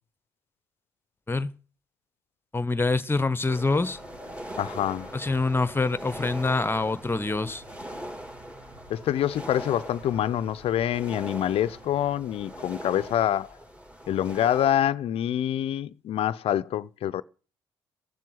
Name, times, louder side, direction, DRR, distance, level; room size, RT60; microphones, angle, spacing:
voice 1, 2.5-4.0 5.1-7.6, left 3 dB, 20° left, 1.2 m, -25 dB
sound 1, 3.5-14.8, equal, 10° right, 3.6 m, -41 dB
sound 2, 3.9-13.0, right 2 dB, 65° right, 5.5 m, -54 dB
voice 2, 4.6-5.1 8.9-13.5 14.1-17.2, left 11 dB, 60° left, 0.7 m, -26 dB
17.0 x 7.5 x 8.0 m
hypercardioid pair, 55°, 11 cm